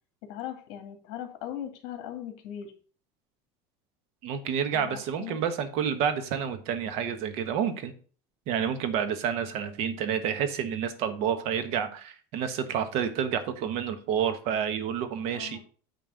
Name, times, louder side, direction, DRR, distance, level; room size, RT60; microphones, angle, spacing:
voice 1, 0.2-2.7 4.7-5.4 15.3-15.6, left 10 dB, 60° left, 5 dB, 2.1 m, -39 dB
voice 2, 4.2-7.9 8.5-15.6, right 8 dB, 55° right, 9 dB, 1.2 m, -29 dB
9.2 x 3.3 x 6.4 m, 0.41 s
cardioid pair, 160°, 13 cm